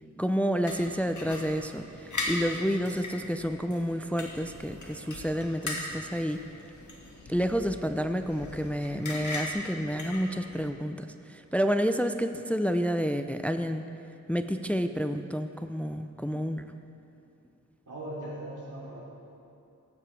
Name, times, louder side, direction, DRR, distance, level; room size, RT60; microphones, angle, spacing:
voice 1, 0.2-1.8 2.3-6.4 7.3-13.8 14.3-16.6, equal, 5° left, 8 dB, 0.4 m, -29 dB
sound 1, 0.7-10.7, left 2 dB, 75° left, 1.7 m, -39 dB
voice 2, 17.9-19.0, right 1 dB, 85° right, -6 dB, 3.2 m, -40 dB
18.0 x 8.9 x 3.3 m, 2.6 s
wide cardioid pair, 55°, 30 cm